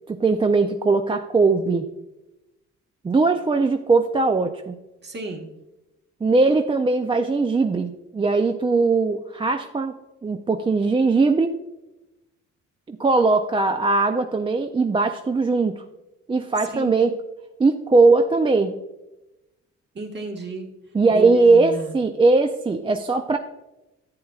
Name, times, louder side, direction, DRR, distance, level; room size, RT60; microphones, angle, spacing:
voice 1, 0.1-1.9 3.0-4.8 6.2-10.0 10.2-11.5 12.9-15.8 16.3-17.1 17.6-18.8 20.9-23.4, right 3 dB, 20° right, 6 dB, 0.4 m, -20 dB
voice 2, 5.0-5.5 16.7-16.9 19.9-20.7 21.1-21.9, right 3 dB, 35° right, 1 dB, 1.5 m, -33 dB
10.5 x 8.3 x 2.4 m, 0.99 s
cardioid pair, 90°, 30 cm